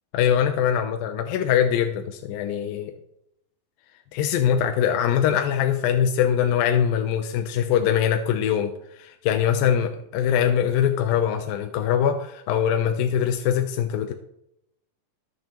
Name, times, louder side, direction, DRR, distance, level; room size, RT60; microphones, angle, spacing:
voice 1, 0.1-2.9 4.1-14.1, left 9 dB, 75° left, 5 dB, 2.4 m, -22 dB
21.5 x 7.4 x 3.0 m, 0.79 s
omnidirectional pair, 4.3 m